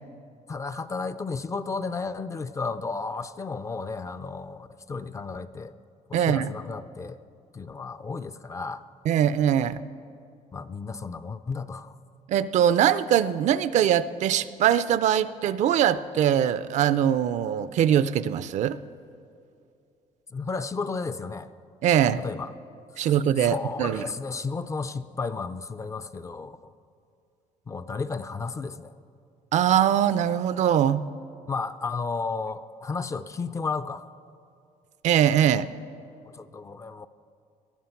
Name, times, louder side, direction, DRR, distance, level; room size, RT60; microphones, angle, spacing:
voice 1, 0.5-5.7 6.1-7.2 7.5-8.8 10.5-11.9 20.3-21.5 22.2-22.5 23.0-23.1 23.4-26.6 27.7-28.9 31.5-34.1 36.3-37.1, left 4 dB, 20° left, 12 dB, 0.4 m, -33 dB
voice 2, 6.1-6.5 9.1-9.8 12.3-18.8 21.8-22.2 23.0-24.0 29.5-31.0 35.0-35.7, right 10 dB, 55° right, 15 dB, 0.5 m, -22 dB
19.0 x 12.0 x 5.8 m, 2.4 s
cardioid pair, 145°, 14 cm